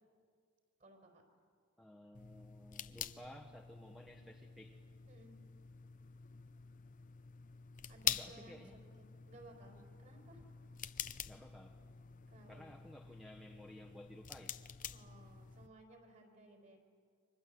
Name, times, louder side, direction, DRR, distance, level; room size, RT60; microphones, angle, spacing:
voice 1, 0.8-1.2 5.1-5.4 7.9-10.4 12.3-12.7 14.9-16.8, right 2 dB, 40° right, 3 dB, 4.8 m, -59 dB
voice 2, 1.8-4.8 8.0-8.8 11.2-11.8 12.5-14.5, equal, ahead, 1 dB, 1.3 m, -55 dB
sound 1, 2.1-15.7, left 9 dB, 40° left, 0.8 m, -46 dB
30.0 x 25.0 x 7.9 m, 2.1 s
head